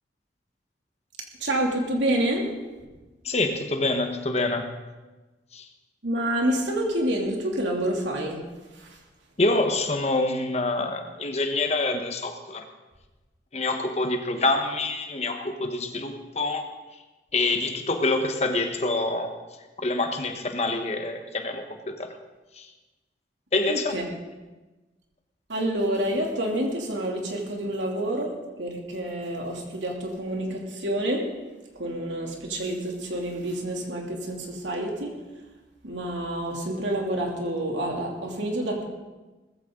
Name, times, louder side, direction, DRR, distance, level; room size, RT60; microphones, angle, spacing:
voice 1, 1.4-2.5 6.0-8.4 8.7-9.0 23.7-24.0 25.5-31.3 31.7-35.1 35.8-38.9, right 1 dB, 75° right, 0 dB, 2.9 m, -28 dB
voice 2, 3.2-4.7 5.5-5.7 9.4-12.6 13.5-16.7 17.3-19.3 19.8-22.1 22.6-22.7 23.5-24.0, left 2 dB, 35° left, 5 dB, 1.2 m, -26 dB
19.5 x 14.5 x 3.8 m, 1.2 s
head